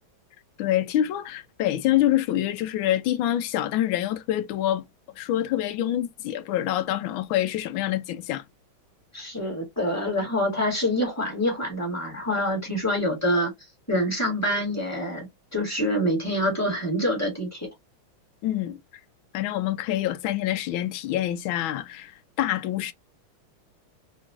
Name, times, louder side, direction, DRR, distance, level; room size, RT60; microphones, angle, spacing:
voice 1, 0.6-4.8 5.2-8.4 18.4-18.8 19.3-22.9, left 12 dB, 80° left, 1.4 m, -26 dB
voice 2, 9.1-13.5 13.9-15.3 15.5-17.7, equal, 10° left, 1.7 m, -26 dB
3.9 x 3.0 x 2.4 m
omnidirectional pair, 2.2 m